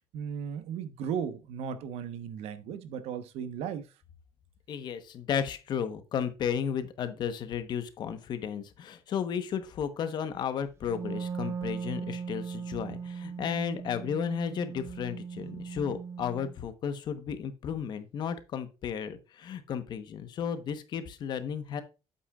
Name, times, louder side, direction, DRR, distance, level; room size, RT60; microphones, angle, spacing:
voice 1, 0.1-3.9, right 7 dB, 85° right, 1.1 m, -36 dB
voice 2, 4.7-21.8, left 7 dB, 45° left, 1.0 m, -33 dB
Wind instrument woodwind instrument, 10.8-16.5, right 6 dB, 25° right, 0.4 m, -38 dB
8.4 x 8.2 x 2.4 m
cardioid pair, 180°, 10 cm